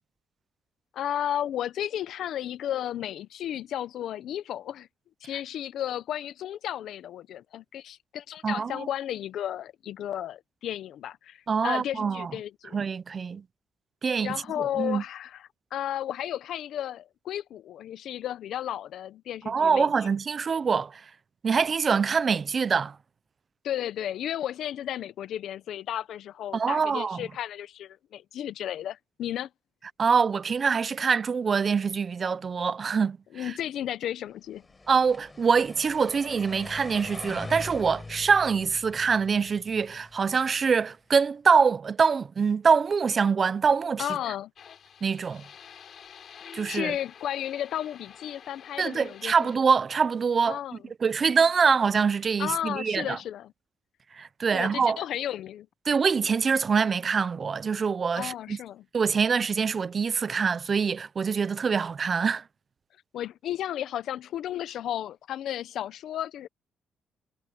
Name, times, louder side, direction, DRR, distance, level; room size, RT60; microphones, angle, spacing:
voice 1, 0.9-4.9 5.2-12.8 14.2-15.4 15.7-19.9 23.6-29.5 33.3-34.7 44.0-44.5 46.6-49.5 50.4-50.8 52.4-53.5 54.5-55.7 58.1-58.8 63.1-66.5, left 11 dB, 75° left, 0.8 m, -33 dB
voice 2, 8.4-8.9 11.5-12.3 12.7-13.4 14.0-15.0 19.5-21.0 21.4-23.0 26.5-27.3 30.0-33.5 34.9-44.1 45.0-45.4 46.5-46.9 48.8-50.6 51.0-53.2 54.2-55.0 55.9-58.6 58.9-62.4, right 5 dB, 40° right, 0.6 m, -24 dB
sound 1, 34.6-40.7, left 3 dB, 20° left, 4.5 m, -43 dB
sound 2, 44.6-49.6, left 8 dB, 60° left, 6.8 m, -49 dB
cardioid pair, 90°, 0 cm